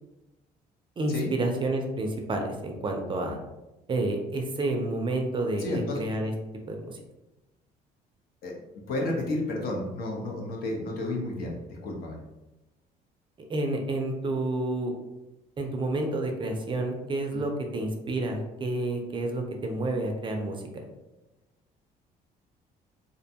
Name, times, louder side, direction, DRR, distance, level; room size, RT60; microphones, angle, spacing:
voice 1, 1.0-3.4 3.9-6.3 6.7-7.0 13.5-14.9 15.6-20.6, right 2 dB, 30° right, 3 dB, 0.4 m, -29 dB
voice 2, 5.6-6.0 8.4-8.6 8.9-12.2 17.3-17.4, left 2 dB, 65° left, -1 dB, 0.7 m, -31 dB
2.5 x 2.2 x 2.7 m, 0.99 s
cardioid pair, 110°, 17 cm